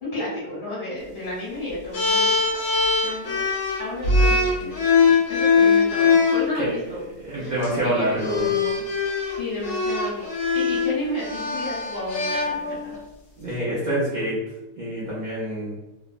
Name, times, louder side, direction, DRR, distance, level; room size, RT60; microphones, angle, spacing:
voice 1, 0.0-2.4 3.0-3.4 3.8-7.1 7.4-9.0 9.3-10.2 10.5-13.0, left 1 dB, 40° left, -9 dB, 1.2 m, -32 dB
sound 1, 1.9-6.5 7.5-7.7 8.2-13.0, left 4 dB, 60° left, 0.8 m, -21 dB
voice 2, 7.2-8.5 13.4-14.4 14.8-15.8, right 1 dB, 65° right, -7 dB, 0.4 m, -26 dB
3.1 x 2.0 x 2.4 m, 0.98 s
omnidirectional pair, 1.6 m